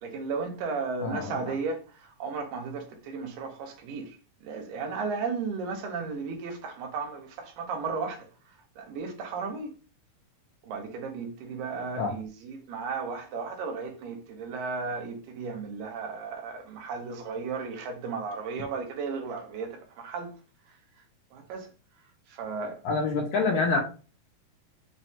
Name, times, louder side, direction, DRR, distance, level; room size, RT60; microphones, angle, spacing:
voice 1, 0.0-4.2 4.4-8.3 8.8-9.7 10.6-20.3 21.3-21.7 22.3-22.8, right 4 dB, 85° right, 2.5 m, -34 dB
voice 2, 1.0-1.5 12.0-12.1 22.8-23.8, left 4 dB, 75° left, 1.8 m, -27 dB
5.9 x 2.2 x 2.9 m
omnidirectional pair, 4.0 m